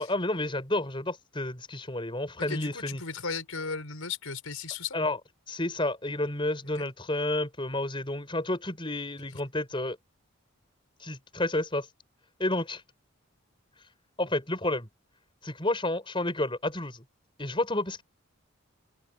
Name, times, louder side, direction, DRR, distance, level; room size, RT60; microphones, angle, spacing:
voice 1, 0.0-3.0 4.9-5.2 5.5-10.0 11.0-11.9 12.4-12.8 14.2-14.9 15.4-17.0 17.4-18.0, left 1 dB, 25° left, 5.4 m, -30 dB
voice 2, 2.5-5.0 6.8-6.9, left 5 dB, 80° left, 5.4 m, -36 dB
open air
head